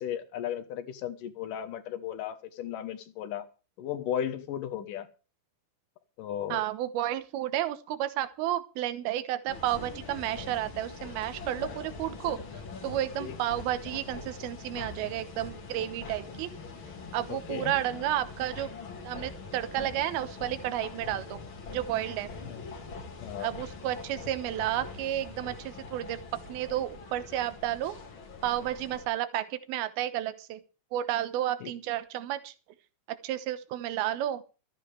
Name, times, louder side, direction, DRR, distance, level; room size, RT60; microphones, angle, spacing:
voice 1, 0.0-3.5 3.8-5.1 6.2-6.6 13.2-13.4 17.3-17.7 22.5-22.6 23.2-23.5 31.6-31.7, left 10 dB, 65° left, 10 dB, 2.5 m, -35 dB
voice 2, 6.5-12.4 12.8-16.5 17.1-18.7 19.0-21.4 21.7-22.3 23.4-26.2 26.5-27.9 28.4-30.6 30.9-32.5 33.2-34.4, right 13 dB, 80° right, 12 dB, 2.9 m, -31 dB
sound 1, 9.5-29.1, left 4 dB, 40° left, 2.2 m, -43 dB
17.0 x 14.0 x 3.4 m, 0.34 s
omnidirectional pair, 4.5 m